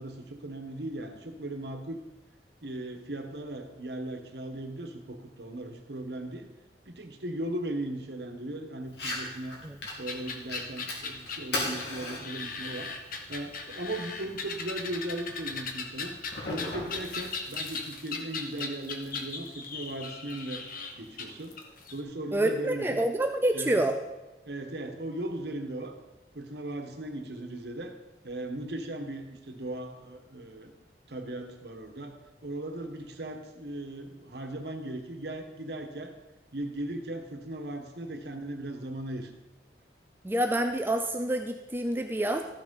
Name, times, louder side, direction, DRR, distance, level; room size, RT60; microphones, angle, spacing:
voice 1, 0.0-2.0 2.6-6.5 6.8-9.6 10.0-12.9 13.3-16.2 16.5-20.6 21.0-21.6 21.9-23.0 23.5-23.8 24.4-26.0 26.3-28.0 28.2-30.7 31.1-36.1 36.5-39.3, right 1 dB, 65° right, 5 dB, 1.3 m, -37 dB
Fire, 8.9-17.9, left 2 dB, 75° left, 2.7 m, -40 dB
sound 1, 10.1-22.0, left 4 dB, 55° left, 1.2 m, -38 dB
voice 2, 22.3-24.0 40.2-42.4, right 1 dB, 10° right, 5 dB, 0.5 m, -27 dB
13.5 x 6.2 x 5.4 m, 1.0 s
head